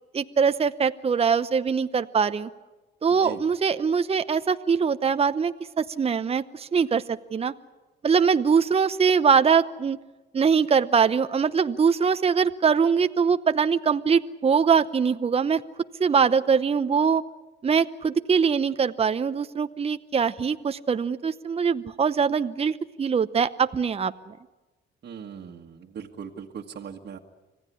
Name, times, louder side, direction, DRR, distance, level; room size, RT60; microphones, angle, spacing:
voice 1, 0.1-2.5 3.0-7.5 8.0-10.0 10.3-15.6 16.0-17.2 17.6-24.3, right 6 dB, 30° right, 11 dB, 0.8 m, -22 dB
voice 2, 25.0-27.2, right 7 dB, 55° right, 0 dB, 1.7 m, -39 dB
26.0 x 16.5 x 9.8 m, 1.2 s
cardioid pair, 90°, 20 cm